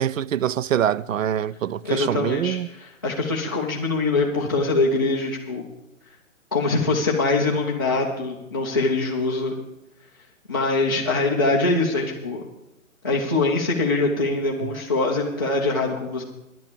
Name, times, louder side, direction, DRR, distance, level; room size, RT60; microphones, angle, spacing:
voice 1, 0.0-2.7, right 10 dB, 75° right, 0.5 m, -24 dB
voice 2, 1.8-5.6 6.5-9.5 10.5-12.4 13.0-16.2, left 3 dB, 15° left, 0.6 m, -23 dB
10.5 x 9.2 x 6.8 m
hypercardioid pair, 165°, 40 cm